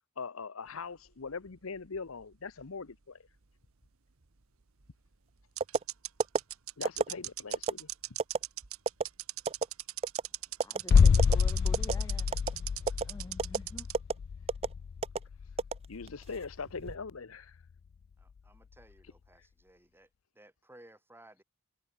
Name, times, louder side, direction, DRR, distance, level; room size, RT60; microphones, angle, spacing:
voice 1, 0.2-3.2 6.8-7.9 15.9-17.6, left 4 dB, 80° left, 0.9 m, -41 dB
sound 1, 1.1-2.6 2.9-3.0 4.8-4.9 5.6-13.9, right 15 dB, 85° right, 1.3 m, -39 dB
sound 2, 5.6-5.8 6.2-6.4 6.9-7.1 7.5-7.7 8.2-8.4 8.9-9.0 9.5-9.7 10.0-10.3 10.6-10.8 11.2-11.4 11.7-12.0 12.3-12.5 12.9-13.0 13.4-13.6 13.9-14.1 14.5-14.7 15.0-15.2 15.6-16.2 16.7-17.0, right 4 dB, 30° right, 0.4 m, -29 dB
voice 2, 10.6-12.3 13.1-13.9, left 1 dB, 15° left, 0.8 m, -47 dB
sound 3, 10.9-16.6 16.9-17.0, left 6 dB, 50° left, 0.3 m, -27 dB
voice 3, 18.2-20.1 20.4-21.4, right 1 dB, 10° right, 4.0 m, -58 dB
head